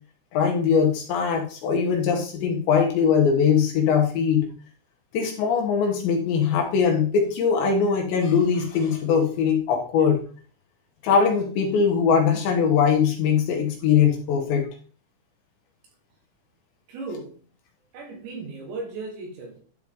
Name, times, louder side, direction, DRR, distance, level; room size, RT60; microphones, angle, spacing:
voice 1, 0.3-4.5 5.1-10.2 11.0-14.7, left 6 dB, 70° left, 1 dB, 3.2 m, -21 dB
voice 2, 16.9-17.5 17.9-19.6, right 3 dB, 70° right, 2 dB, 3.5 m, -36 dB
12.0 x 4.6 x 3.7 m, 0.41 s
omnidirectional pair, 5.8 m